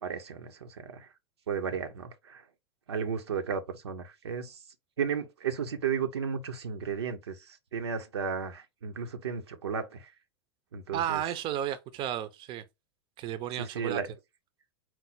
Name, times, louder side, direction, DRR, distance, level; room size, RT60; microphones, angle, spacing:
voice 1, 0.0-1.1 1.5-2.4 2.9-4.6 5.0-10.1 10.7-11.2 13.6-14.1, right 6 dB, 85° right, 0.7 m, -34 dB
voice 2, 10.9-12.6 13.2-14.0, right 11 dB, 35° right, 0.5 m, -33 dB
4.5 x 2.0 x 4.0 m
hypercardioid pair, 105°, 14 cm